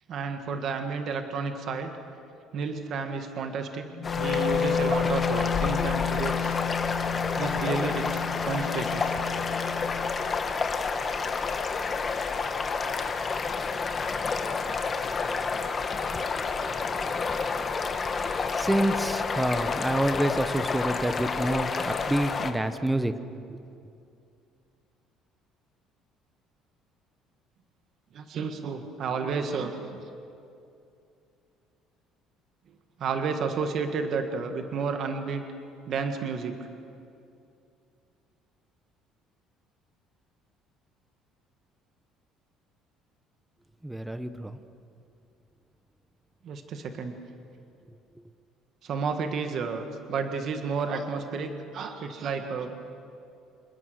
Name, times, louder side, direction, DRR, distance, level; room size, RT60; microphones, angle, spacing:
voice 1, 0.1-1.9 2.5-3.9 4.1-6.6 7.3-9.2 28.1-30.0 33.0-35.4 35.9-36.6 46.4-47.1 48.8-52.7, right 5 dB, 45° right, 6 dB, 1.6 m, -31 dB
Wind instrument woodwind instrument, 3.9-10.1, left 7 dB, 55° left, 2.7 m, -30 dB
sound 1, 4.0-22.5, left 4 dB, 25° left, 1.3 m, -29 dB
voice 2, 18.5-23.1 23.5-23.6 43.8-44.6, right 1 dB, 5° right, 11 dB, 0.9 m, -27 dB
27.0 x 22.0 x 6.5 m, 2.6 s
cardioid pair, 165°, 0 cm